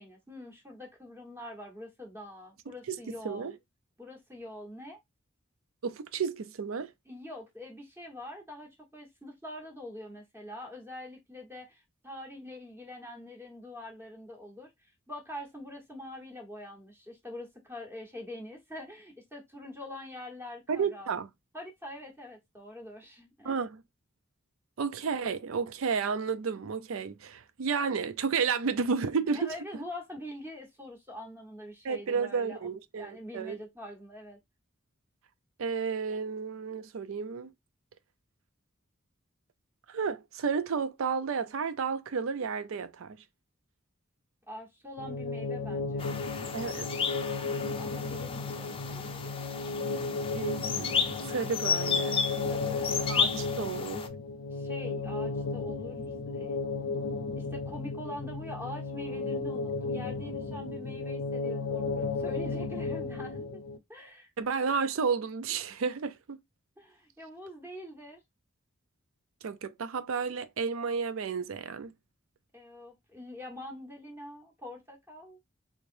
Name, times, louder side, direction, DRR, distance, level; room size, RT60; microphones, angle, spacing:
voice 1, 0.0-3.5 4.0-5.0 7.1-21.2 21.5-23.6 29.3-32.7 32.9-34.4 44.5-46.3 47.8-49.4 52.5-52.9 54.5-56.0 56.2-56.6 57.4-63.6 63.9-64.3 66.8-68.2 72.5-75.4, left 1 dB, 10° right, 1.2 m, -44 dB
voice 2, 5.8-6.9 20.7-21.3 23.4-23.8 24.8-29.5 31.8-33.6 35.6-37.5 39.9-43.2 46.5-46.9 50.3-50.9 51.3-52.2 53.1-54.1 64.4-66.4 69.4-71.9, right 5 dB, 85° right, 0.5 m, -32 dB
sound 1, 45.0-63.8, left 3 dB, 85° left, 0.5 m, -34 dB
sound 2, 46.0-54.1, left 6 dB, 25° left, 0.5 m, -33 dB
3.8 x 3.2 x 2.5 m
head